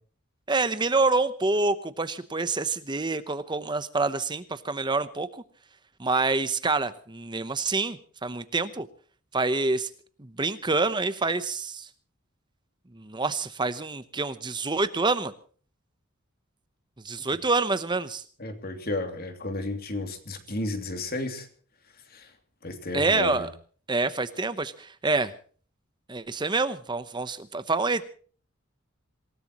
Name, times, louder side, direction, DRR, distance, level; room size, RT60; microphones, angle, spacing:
voice 1, 0.5-5.4 6.0-8.9 9.3-9.9 10.2-11.9 13.0-15.3 17.0-18.2 22.9-23.5 23.9-25.3 26.1-28.0, right 3 dB, 20° right, 12 dB, 0.9 m, -27 dB
voice 2, 18.4-21.5 22.1-22.3 22.6-23.5, left 2 dB, 45° left, 7 dB, 2.8 m, -32 dB
27.0 x 17.5 x 3.0 m, 0.43 s
head